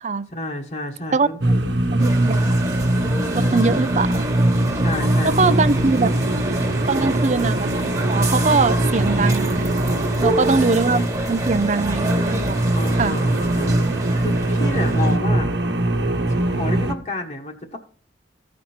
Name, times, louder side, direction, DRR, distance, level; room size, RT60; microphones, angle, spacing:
voice 1, 0.3-1.6 3.4-3.8 4.7-5.5 9.9-10.7 12.7-13.8 14.2-15.5 16.3-17.8, left 1 dB, 40° left, 1.3 m, -31 dB
voice 2, 1.1-1.5 1.9-2.5 3.3-4.2 5.2-6.1 6.9-7.7 8.1-9.9 10.2-12.6 13.0-13.2, right 4 dB, 40° right, 0.5 m, -22 dB
sound 1, 1.4-16.9, right 1 dB, 85° right, 1.1 m, -21 dB
sound 2, 2.0-15.2, right 1 dB, 20° right, 1.4 m, -29 dB
15.0 x 5.2 x 4.3 m
head